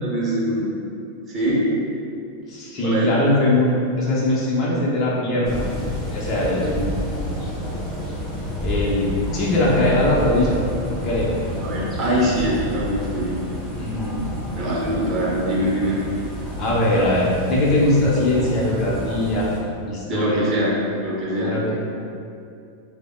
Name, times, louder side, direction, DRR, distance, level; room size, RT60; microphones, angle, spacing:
voice 1, 0.0-0.7 1.3-1.7 2.8-3.1 11.6-13.4 14.5-16.1 20.1-20.7 21.0-21.5, right 1 dB, 30° right, -6 dB, 0.9 m, -23 dB
voice 2, 2.5-3.7 4.0-5.6 6.1-6.9 8.6-10.6 11.0-11.3 13.8-14.2 16.6-19.5 19.9-20.4 21.4-21.7, left 1 dB, 35° left, -6 dB, 0.7 m, -21 dB
sound 1, 5.4-19.6, equal, ahead, 0.8 m, -30 dB
3.4 x 2.0 x 3.6 m, 2.5 s
figure-of-eight pair, 90°, 0 cm